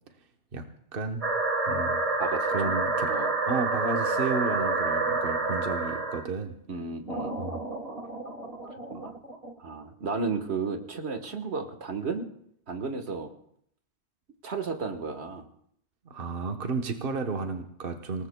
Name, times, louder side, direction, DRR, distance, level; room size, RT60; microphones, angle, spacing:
voice 1, 0.5-1.2 1.7-2.0 2.5-3.1 3.5-6.6 7.4-7.6 16.0-18.3, right 4 dB, 60° right, 5 dB, 1.2 m, -32 dB
sound 1, 1.2-6.3 7.1-9.5, right 3 dB, 35° right, 1.5 m, -29 dB
voice 2, 2.2-2.8 3.1-3.3 6.7-7.4 8.7-9.2 9.6-12.3 12.7-13.3 14.4-15.4, right 4 dB, 80° right, 6 dB, 1.6 m, -33 dB
27.0 x 18.5 x 2.2 m, 0.68 s
omnidirectional pair, 1.1 m